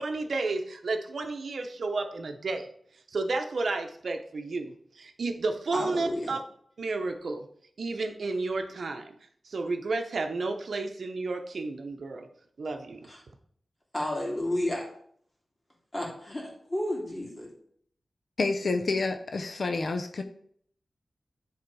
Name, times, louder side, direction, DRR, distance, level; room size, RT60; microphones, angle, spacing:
voice 1, 0.0-2.7 3.1-6.4 6.8-7.5 7.8-9.1 9.4-12.3 12.6-13.1, right 3 dB, 70° right, 5 dB, 0.8 m, -32 dB
voice 2, 5.7-6.3 13.1-13.2 13.9-14.9 15.9-17.5, left 1 dB, 25° left, -2 dB, 2.6 m, -31 dB
voice 3, 18.4-20.2, left 3 dB, 60° left, 6 dB, 0.6 m, -28 dB
10.5 x 3.7 x 4.7 m, 0.63 s
wide cardioid pair, 120°, 0 cm